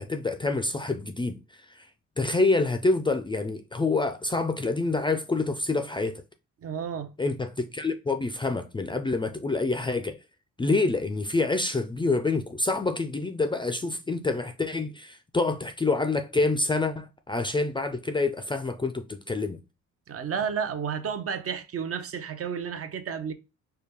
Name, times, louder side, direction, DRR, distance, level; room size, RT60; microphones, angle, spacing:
voice 1, 0.0-1.4 1.7-1.9 2.2-6.2 7.2-10.2 10.6-19.6, left 3 dB, 15° left, 0.4 m, -27 dB
voice 2, 6.6-7.1 20.1-23.3, right 7 dB, 50° right, 0.7 m, -31 dB
4.6 x 2.2 x 3.5 m
cardioid pair, 90°, 30 cm